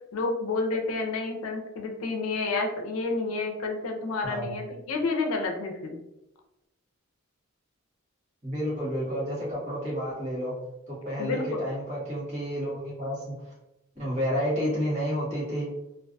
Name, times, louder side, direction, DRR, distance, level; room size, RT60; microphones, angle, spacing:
voice 1, 0.1-6.0 11.2-11.6, left 3 dB, 90° left, 2 dB, 0.5 m, -30 dB
voice 2, 4.2-4.5 8.4-10.5 10.9-13.5 13.9-15.7, equal, 35° right, -7 dB, 1.2 m, -30 dB
2.4 x 2.2 x 2.5 m, 0.90 s
head